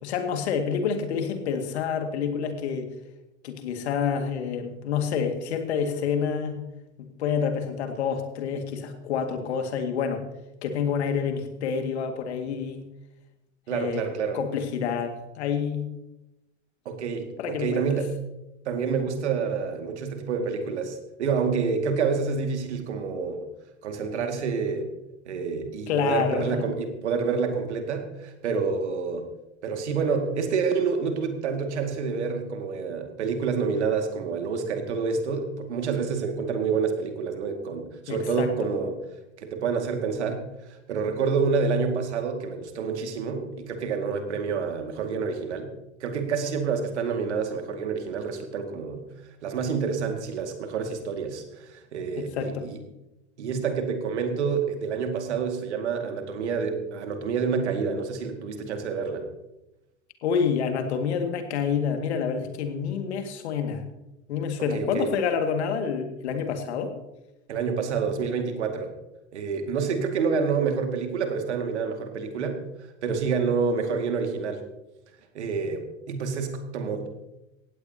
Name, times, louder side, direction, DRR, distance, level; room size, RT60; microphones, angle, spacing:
voice 1, 0.0-2.9 3.4-6.6 7.0-10.2 10.6-12.8 13.7-14.1 14.3-15.8 17.4-18.0 25.9-26.6 38.1-38.5 52.2-52.7 60.2-63.8 64.3-66.9, left 6 dB, 70° left, 6 dB, 2.1 m, -28 dB
voice 2, 13.7-14.4 16.9-18.1 18.7-23.5 23.8-24.9 25.3-29.3 29.6-39.0 39.4-45.7 46.0-49.1 49.4-52.8 53.4-59.3 64.7-65.1 67.5-68.9 69.3-74.6 75.3-77.1, right 5 dB, 75° right, 5 dB, 2.3 m, -28 dB
18.0 x 16.0 x 2.9 m, 0.92 s
figure-of-eight pair, 75°, 35 cm